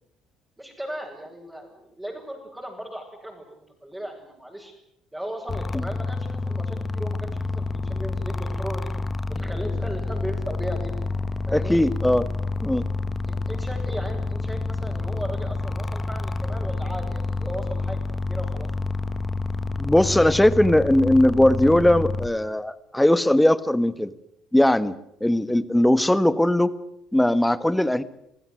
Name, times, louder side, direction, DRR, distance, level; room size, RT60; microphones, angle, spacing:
voice 1, 0.6-4.7 5.1-8.9 9.3-10.9 11.5-11.8 13.3-18.0 18.3-18.7, equal, 10° right, -5 dB, 7.5 m, -36 dB
sound 1, 5.5-22.3, left 3 dB, 30° left, 1.6 m, -28 dB
voice 2, 11.5-12.3 12.6-12.9 19.8-24.1 24.5-26.8 27.1-28.0, left 1 dB, 5° left, 14 dB, 1.6 m, -19 dB
26.5 x 16.0 x 9.4 m, 0.78 s
hypercardioid pair, 65°, 0 cm